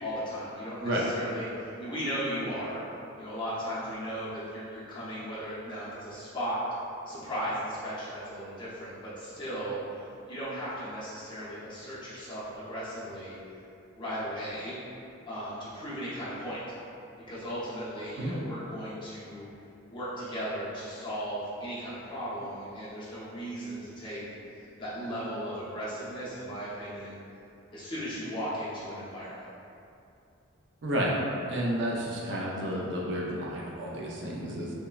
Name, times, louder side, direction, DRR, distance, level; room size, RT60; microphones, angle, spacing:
voice 1, 0.0-2.8 3.2-6.6 7.1-13.4 13.9-14.8 15.3-16.6 17.3-19.5 19.9-24.2 24.5-27.2 27.7-29.5, equal, 20° left, -10 dB, 0.5 m, -36 dB
voice 2, 30.8-31.1 31.5-34.7, equal, 55° right, -3 dB, 0.3 m, -31 dB
3.1 x 2.0 x 2.3 m, 2.6 s
head